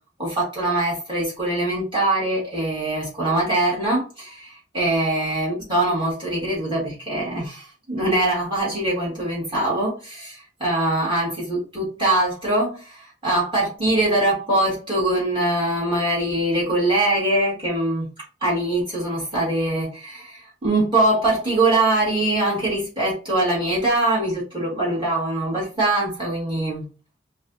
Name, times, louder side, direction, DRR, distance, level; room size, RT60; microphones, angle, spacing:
voice 1, 0.2-18.1 18.4-26.8, right 1 dB, 25° right, 2.0 m, -23 dB
5.0 x 2.4 x 2.7 m
head